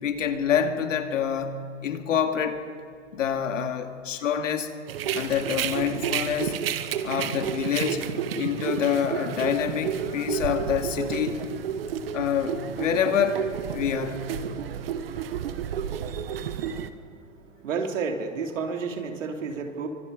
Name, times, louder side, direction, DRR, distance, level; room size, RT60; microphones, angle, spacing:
voice 1, 0.0-2.6 3.1-4.7 5.1-6.6 7.0-11.4 12.1-14.3, left 8 dB, 80° left, 6 dB, 2.5 m, -27 dB
sound 1, 4.9-16.9, right 8 dB, 50° right, 1.3 m, -31 dB
voice 2, 17.6-19.9, right 5 dB, 85° right, 4 dB, 3.4 m, -30 dB
27.5 x 25.0 x 5.3 m, 2.4 s
supercardioid pair, 180°, 37 cm